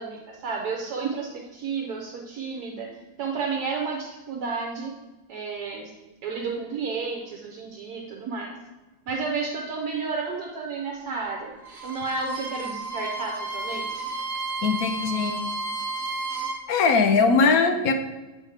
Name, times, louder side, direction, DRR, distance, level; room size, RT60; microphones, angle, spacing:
voice 1, 0.0-2.9 3.2-4.9 5.3-5.9 6.2-8.5 9.1-11.6 11.8-14.1, right 4 dB, 75° right, 0 dB, 1.3 m, -31 dB
Bowed string instrument, 11.6-16.6, right 3 dB, 45° right, 1.3 m, -32 dB
voice 2, 14.6-15.4 16.7-17.9, left 4 dB, 70° left, 6 dB, 1.1 m, -20 dB
8.2 x 3.5 x 4.8 m, 1.1 s
omnidirectional pair, 1.7 m